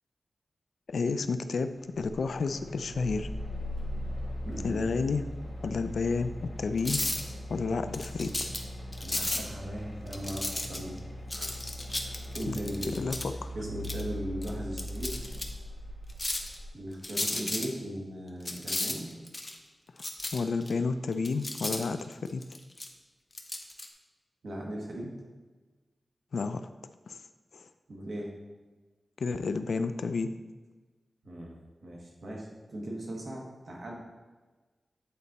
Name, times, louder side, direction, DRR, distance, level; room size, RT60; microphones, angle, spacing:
voice 1, 0.9-1.7 2.0-3.3 4.6-5.2 5.6-7.0 7.5-8.5 12.5-12.6 12.9-13.5 20.3-22.5 26.3-26.7 27.1-27.2 27.5-27.7 29.2-30.3, left 4 dB, 80° left, 10 dB, 0.3 m, -31 dB
sound 1, 2.0-16.7, left 1 dB, 40° left, 1.6 m, -40 dB
Drum, 2.5-15.4, equal, 15° right, 1.5 m, -49 dB
voice 2, 4.4-4.8 9.0-11.0 11.3-11.5 12.0-13.0 13.5-15.2 16.7-19.1 24.4-25.1 27.9-28.3 31.2-31.6 31.8-33.9, right 1 dB, 65° right, -2 dB, 1.6 m, -38 dB
sound 2, 6.8-7.3 7.9-8.6 8.9-9.4 10.1-11.0 11.3-13.2 13.8-14.0 14.4-14.5 14.8-15.4 16.1-16.6 17.0-17.7 18.4-19.5 20.0-20.7 21.1-22.9 23.3-23.9, left 1 dB, 20° left, 0.7 m, -33 dB
8.6 x 4.2 x 4.1 m, 1.3 s
wide cardioid pair, 135°, 0 cm